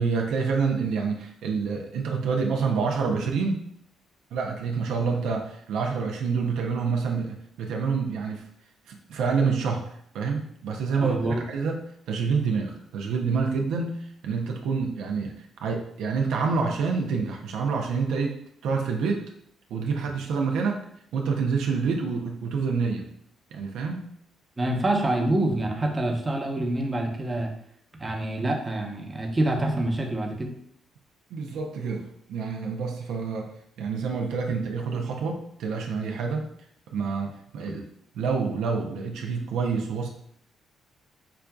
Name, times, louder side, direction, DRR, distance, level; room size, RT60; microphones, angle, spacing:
voice 1, 0.0-3.6 4.3-8.4 8.9-9.9 10.1-19.3 19.7-20.8 21.1-23.1 23.5-24.1 31.3-33.5 33.8-36.5 36.9-37.9 38.1-40.1, right 5 dB, 85° right, 2 dB, 0.5 m, -27 dB
voice 2, 11.0-11.4 24.6-27.5 28.0-30.5 37.6-37.8, right 1 dB, 20° right, 1 dB, 0.8 m, -26 dB
5.7 x 2.5 x 2.3 m, 0.67 s
cardioid pair, 90°, 0 cm